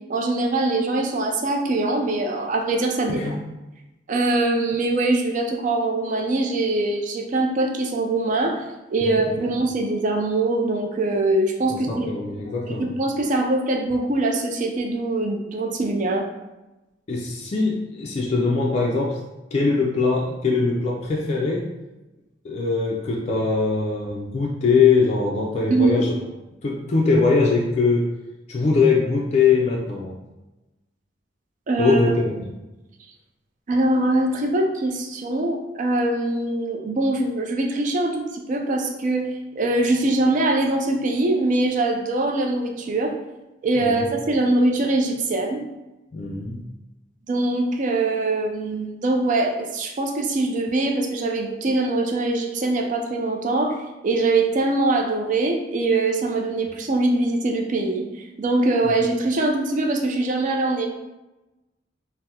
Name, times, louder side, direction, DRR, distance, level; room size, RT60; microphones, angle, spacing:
voice 1, 0.1-3.2 4.1-8.6 8.9-12.1 12.7-16.2 25.7-26.0 31.7-32.0 33.7-39.3 39.6-43.1 43.6-45.6 47.3-53.8 54.0-58.0 58.4-60.9, right 2 dB, 45° right, 3 dB, 0.4 m, -22 dB
voice 2, 3.1-3.4 9.0-9.5 11.7-13.0 17.1-19.2 19.5-21.7 22.4-26.2 26.6-28.1 28.5-30.2 31.8-32.6 43.8-44.1 46.1-46.7, left 4 dB, 35° left, -2 dB, 0.3 m, -22 dB
3.5 x 2.0 x 2.8 m, 1.0 s
head